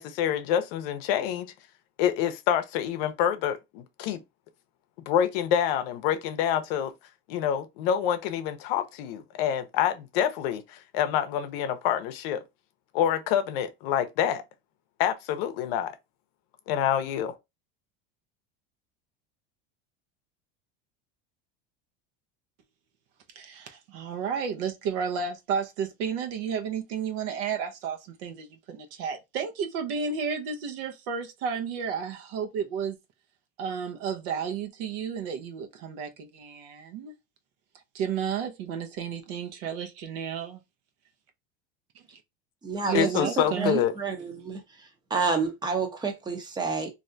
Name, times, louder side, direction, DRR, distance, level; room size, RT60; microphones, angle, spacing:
voice 1, 0.0-1.5 2.0-4.2 5.1-6.9 7.3-12.4 12.9-14.4 15.0-16.0 16.7-17.3 42.9-43.9, left 9 dB, 75° left, 0.6 m, -27 dB
voice 2, 23.3-33.0 33.6-37.1 37.9-40.6 42.9-43.8, right 7 dB, 75° right, 0.8 m, -32 dB
voice 3, 42.6-43.1 43.6-44.6 45.1-46.9, right 4 dB, 15° right, 0.6 m, -29 dB
3.2 x 2.6 x 2.6 m
cardioid pair, 150°, 30 cm